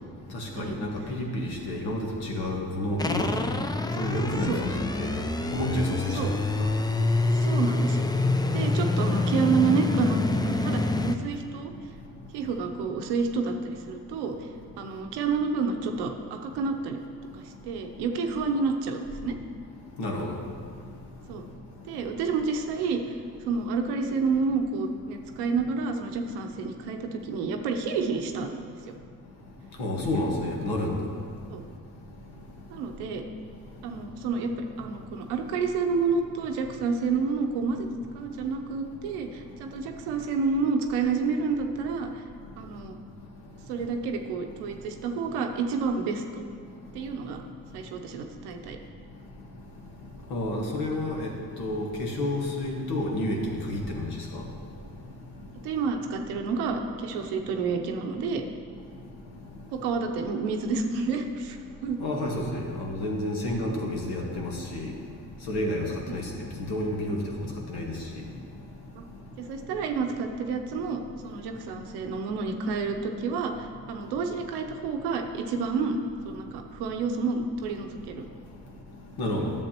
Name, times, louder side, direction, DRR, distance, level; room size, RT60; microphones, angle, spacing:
voice 1, 0.3-3.4 4.0-5.2 5.5-6.7 20.0-20.4 29.8-31.0 50.3-51.3 51.6-54.4 62.0-64.9 65.5-66.3 66.6-67.2 67.7-68.0 79.2-79.5, left 1 dB, 75° left, -1 dB, 1.5 m, -30 dB
sound 1, 3.0-11.2, left 2 dB, 10° left, 0.5 m, -26 dB
voice 2, 7.3-8.0 8.5-10.2 10.5-11.7 12.3-14.5 14.8-17.0 17.3-19.3 21.3-21.4 21.9-23.1 23.4-28.6 31.5-31.6 32.7-33.2 33.8-37.9 38.1-42.2 42.6-43.0 43.7-46.4 46.9-47.4 47.7-48.8 55.6-58.4 59.7-62.0 66.1-66.3 69.4-76.0 76.2-78.2, right 4 dB, 90° right, 4 dB, 0.7 m, -29 dB
11.0 x 7.0 x 3.0 m, 2.3 s
supercardioid pair, 50°, 39 cm